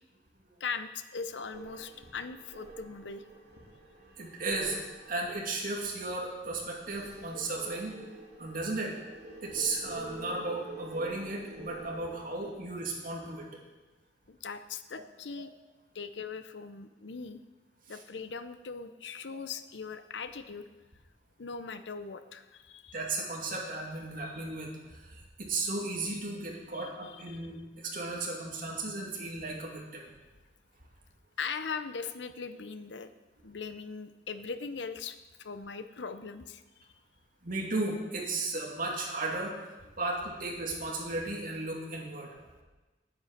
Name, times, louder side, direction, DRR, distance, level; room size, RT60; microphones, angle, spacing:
voice 1, 0.6-3.2 14.3-15.5 15.9-17.4 17.9-20.7 21.4-23.0 26.7-27.4 31.4-33.1 33.4-36.9, left 5 dB, 75° left, 11 dB, 0.7 m, -40 dB
sound 1, 1.5-12.5, right 2 dB, 70° right, 2.9 m, -47 dB
voice 2, 4.2-4.8 5.1-8.0 8.4-8.9 9.4-13.5 15.4-15.5 17.9-18.0 22.9-30.1 37.4-42.4, right 2 dB, 50° right, -1 dB, 2.5 m, -35 dB
10.0 x 9.3 x 6.6 m, 1.2 s
head